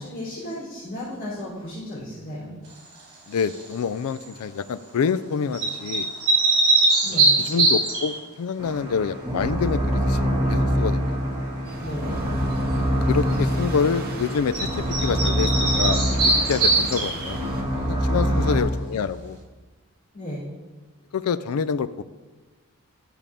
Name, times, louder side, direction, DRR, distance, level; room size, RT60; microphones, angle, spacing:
voice 1, 0.0-2.5 7.0-7.3 11.8-12.1 18.2-18.5 20.1-20.4, left 1 dB, 55° left, -11 dB, 3.5 m, -34 dB
voice 2, 3.3-6.1 7.1-11.2 13.1-17.4 17.9-19.4 21.1-22.0, left 6 dB, 80° left, 15 dB, 0.4 m, -27 dB
sound 1, 3.4-3.7 5.5-8.1 14.5-14.6 14.9-17.3, right 2 dB, 65° right, 3.4 m, -21 dB
sound 2, 8.6-18.6, equal, 15° right, 1.6 m, -25 dB
sound 3, 11.6-17.6, right 2 dB, 40° right, 1.0 m, -38 dB
12.0 x 6.9 x 3.7 m, 1.3 s
head